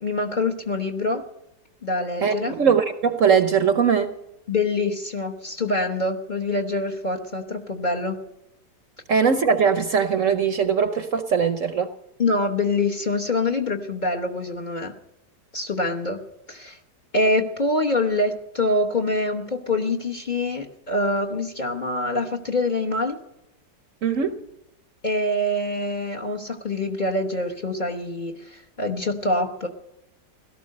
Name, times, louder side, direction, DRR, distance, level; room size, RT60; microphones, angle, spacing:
voice 1, 0.0-1.2 1.8-2.6 4.5-8.2 12.2-14.9 15.5-16.2 16.5-16.8 17.1-23.2 25.0-29.7, left 2 dB, 30° left, 1.1 m, -25 dB
voice 2, 2.2-4.1 9.1-11.9 24.0-24.4, right 6 dB, 55° right, 1.0 m, -20 dB
17.5 x 13.0 x 6.5 m
omnidirectional pair, 1.9 m